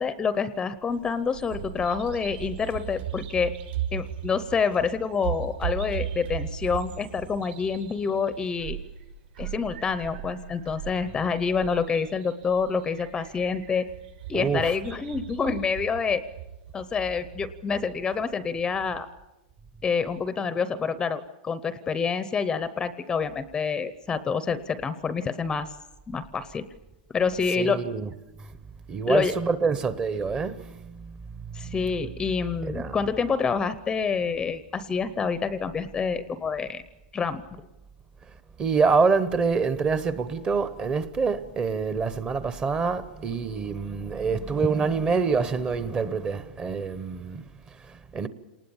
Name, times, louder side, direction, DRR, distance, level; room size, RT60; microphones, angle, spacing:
voice 1, 0.0-3.5 3.9-8.8 9.4-13.9 14.3-16.2 16.7-19.1 19.8-25.7 26.1-26.7 27.1-27.8 29.1-29.3 31.5-36.8 37.1-37.7, left 5 dB, 15° left, 0.7 m, -27 dB
Bird vocalization bird call bird song, 0.9-19.0, right 9 dB, 70° right, 6.1 m, -38 dB
voice 2, 14.3-14.7 27.6-28.1 28.4-28.6 28.9-31.8 32.6-33.0 38.3-48.3, right 5 dB, 20° right, 0.9 m, -26 dB
28.5 x 19.5 x 7.1 m
supercardioid pair, 150°, 6 cm